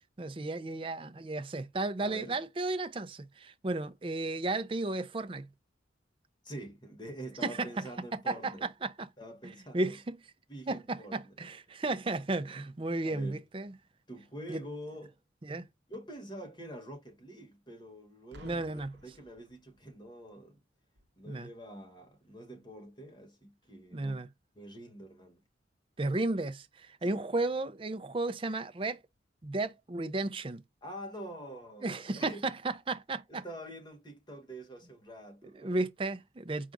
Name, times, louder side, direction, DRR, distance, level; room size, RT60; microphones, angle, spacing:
voice 1, 0.2-5.5 7.4-9.1 9.4-10.2 10.7-13.7 14.5-14.6 15.4-15.7 18.4-18.9 21.3-21.5 23.9-24.3 26.0-29.0 29.4-30.6 31.8-33.4 35.5-36.7, right 2 dB, 30° right, 0.5 m, -34 dB
voice 2, 2.0-2.4 6.4-8.7 9.2-10.0 10.5-11.3 11.8-11.9 13.0-13.4 14.1-15.2 15.9-20.6 21.2-24.2 24.5-25.4 27.0-27.2 30.8-32.4 33.3-35.8, right 1 dB, 25° left, 1.2 m, -46 dB
Boom, 18.3-20.1 20.9-21.2, right 1 dB, 75° right, 0.9 m, -55 dB
4.6 x 2.4 x 3.8 m
head